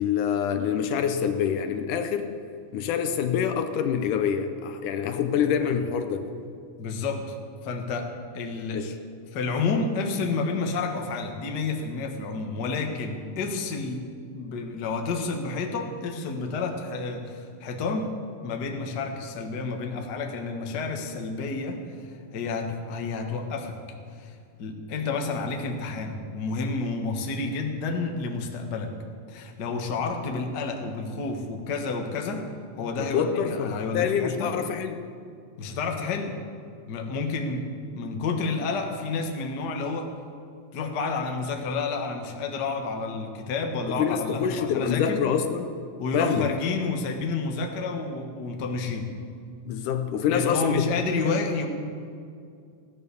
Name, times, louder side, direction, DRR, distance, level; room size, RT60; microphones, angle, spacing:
voice 1, 0.0-2.3 2.7-6.2 8.7-8.9 33.0-35.0 43.9-45.7 46.1-46.5 49.7-50.8 51.2-51.4, left 8 dB, 75° left, 8 dB, 2.2 m, -26 dB
voice 2, 6.8-7.4 7.6-8.8 9.3-14.0 14.3-18.1 18.4-23.8 24.2-28.9 29.3-32.4 32.8-34.5 35.6-36.3 36.9-40.1 40.7-45.2 46.0-49.1 50.3-51.7, left 4 dB, 45° left, 3 dB, 1.4 m, -30 dB
16.0 x 11.0 x 6.9 m, 2.3 s
omnidirectional pair, 3.8 m